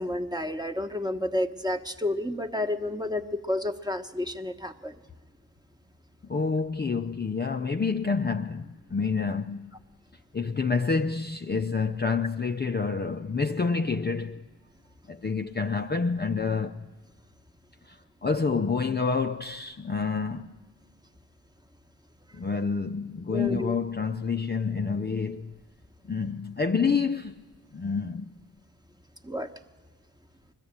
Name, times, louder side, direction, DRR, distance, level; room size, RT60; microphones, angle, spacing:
voice 1, 0.0-4.9 23.3-23.7 29.2-29.5, left 1 dB, 10° right, 1.1 m, -30 dB
voice 2, 6.3-9.7 10.3-14.5 15.1-16.9 17.8-20.6 22.3-25.6 26.0-27.4 27.7-28.3, left 5 dB, 25° left, 0.6 m, -28 dB
21.5 x 13.5 x 8.8 m
cardioid pair, 65°, 42 cm